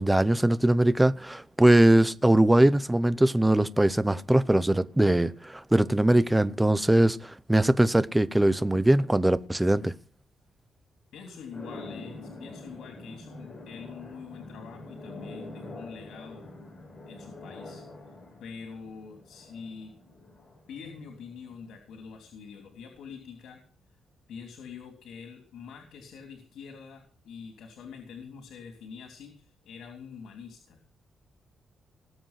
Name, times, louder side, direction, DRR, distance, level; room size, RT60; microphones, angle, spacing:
voice 1, 0.0-9.9, right 1 dB, 5° right, 0.6 m, -21 dB
voice 2, 11.1-16.6 17.1-17.8 18.4-19.9 20.7-23.6 24.3-30.8, left 6 dB, 85° left, 3.4 m, -45 dB
sound 1, 11.5-21.9, left 2 dB, 20° left, 7.0 m, -45 dB
20.0 x 8.0 x 5.8 m
wide cardioid pair, 180°, 0 cm